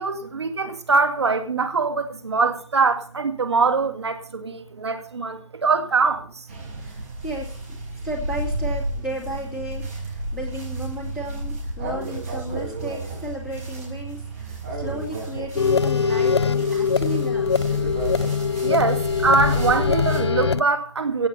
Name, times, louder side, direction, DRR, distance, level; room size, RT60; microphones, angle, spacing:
voice 1, 0.0-6.5 18.6-21.3, right 4 dB, 60° right, 8 dB, 2.1 m, -23 dB
sound 1, 6.5-20.2, right 1 dB, 25° right, 6.5 m, -32 dB
voice 2, 6.8-7.8 8.0-17.5, equal, 5° right, -5 dB, 2.4 m, -34 dB
sound 2, 15.6-20.6, left 6 dB, 60° left, 0.6 m, -22 dB
16.5 x 8.9 x 5.5 m, 0.42 s
figure-of-eight pair, 160°, 16 cm